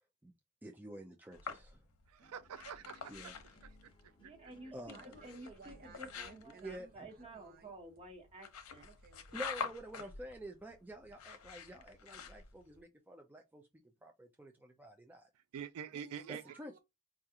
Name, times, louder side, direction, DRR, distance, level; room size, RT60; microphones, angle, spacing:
voice 1, 0.6-1.8 3.1-3.3 4.7-5.1 6.6-7.1 9.3-13.7 14.0-15.3 16.3-16.7, right 1 dB, 10° right, 0.4 m, -49 dB
sound 1, 1.3-12.8, left 6 dB, 75° left, 0.7 m, -48 dB
voice 2, 2.1-3.3 3.6-3.9 4.2-4.5 15.5-16.5, right 7 dB, 75° right, 0.4 m, -46 dB
sound 2, 2.2-8.2, left 2 dB, 20° left, 0.8 m, -68 dB
voice 3, 4.2-4.7 5.0-8.8, right 1 dB, 25° right, 1.1 m, -52 dB
voice 4, 4.9-7.7 8.8-9.4 15.9-16.8, right 3 dB, 40° right, 0.8 m, -58 dB
4.7 x 2.4 x 2.8 m
head